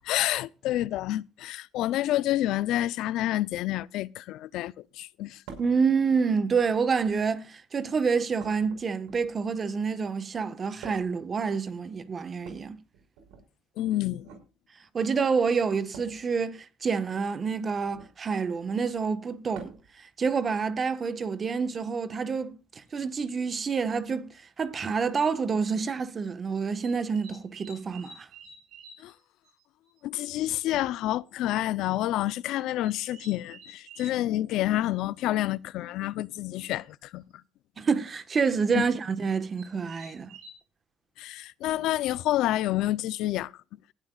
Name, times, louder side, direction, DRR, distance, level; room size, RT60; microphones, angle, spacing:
voice 1, 0.0-5.4 13.8-14.3 29.0-29.1 30.0-37.2 38.7-38.9 41.2-43.5, left 14 dB, 70° left, 0.6 m, -28 dB
sound 1, 5.5-5.8 6.9-7.4 8.4-9.5 10.8-11.2 12.4-13.4 14.1-14.5 15.9-16.2 17.8-18.2 19.5-19.9 21.4-21.5 22.7-22.8, right 5 dB, 90° right, 5.4 m, -47 dB
voice 2, 5.6-12.8 14.9-19.7 20.2-22.6 22.9-24.3 24.6-28.3 37.8-40.3, right 5 dB, 30° right, 1.4 m, -28 dB
sound 2, 24.3-24.4 25.1-25.4 26.8-29.1 29.4-29.5 29.9-30.0 30.3-30.4 30.6-30.7 31.5-31.8 32.8-34.2 36.3-36.4 36.7-37.0 38.9-39.0 39.6-40.5, right 3 dB, 70° right, 7.9 m, -50 dB
19.5 x 12.0 x 2.5 m
cardioid pair, 110°, 0 cm